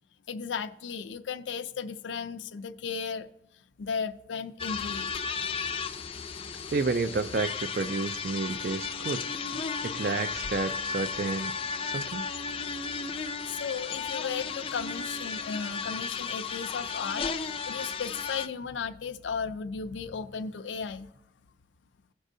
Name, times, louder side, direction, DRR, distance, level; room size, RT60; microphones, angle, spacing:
voice 1, 0.3-3.3 3.8-5.1 13.5-21.1, left 6 dB, 90° left, 9 dB, 0.5 m, -35 dB
sound 1, 4.6-18.5, left 5 dB, 30° left, 0.4 m, -34 dB
voice 2, 6.7-9.3 9.8-11.5 11.8-12.2, right 4 dB, 55° right, 10 dB, 0.4 m, -30 dB
16.5 x 6.2 x 2.7 m, 0.85 s
head